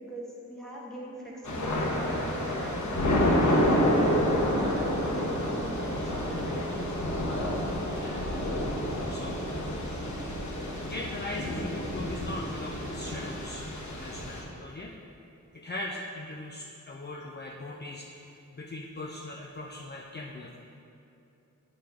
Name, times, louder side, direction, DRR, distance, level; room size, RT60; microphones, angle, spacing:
voice 1, 0.0-7.2, right 1 dB, ahead, -5 dB, 1.5 m, -42 dB
Thunder / Rain, 1.4-14.4, equal, 70° left, 1.1 m, -29 dB
voice 2, 7.9-8.2 9.1-9.4 10.8-13.7 14.0-14.9 15.5-20.6, left 2 dB, 35° left, -1 dB, 0.5 m, -40 dB
9.2 x 3.3 x 5.7 m, 2.9 s
wide cardioid pair, 80°, 30 cm